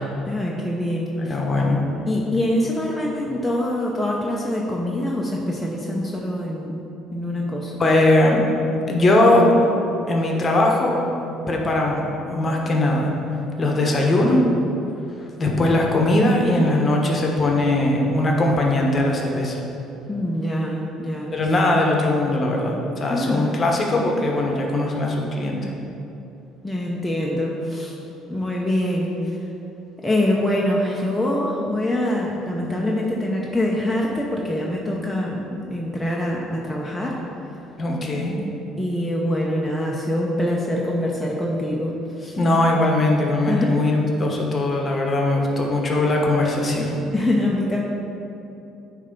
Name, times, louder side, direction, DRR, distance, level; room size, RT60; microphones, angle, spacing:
voice 1, 0.3-1.4 2.1-6.7 7.1-7.8 20.1-21.5 23.1-23.5 26.6-27.9 28.3-29.4 30.0-37.2 37.5-37.6 38.8-42.4 43.4-43.8 47.1-47.8, left 1 dB, 5° left, -3 dB, 0.7 m, -24 dB
voice 2, 1.2-1.8 7.8-8.4 8.9-9.7 10.1-10.9 11.5-13.1 13.6-14.4 15.4-19.6 21.3-25.7 37.8-38.4 42.4-47.0, left 1 dB, 30° left, 0 dB, 1.1 m, -20 dB
8.6 x 3.3 x 5.2 m, 2.9 s
cardioid pair, 95°, 0 cm